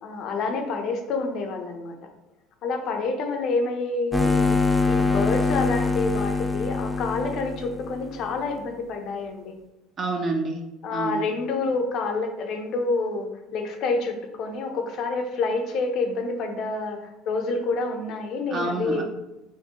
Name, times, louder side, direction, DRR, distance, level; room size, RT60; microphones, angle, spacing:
voice 1, 0.0-2.0 2.6-4.6 4.9-9.6 10.8-19.0, left 3 dB, 55° left, 4 dB, 0.6 m, -28 dB
sound 1, 4.1-8.5, left 3 dB, 10° left, 0.3 m, -24 dB
voice 2, 10.0-10.6 10.9-11.3 18.5-19.0, right 3 dB, 40° right, 3 dB, 0.5 m, -27 dB
4.4 x 2.1 x 2.9 m, 0.95 s
supercardioid pair, 110°, 0 cm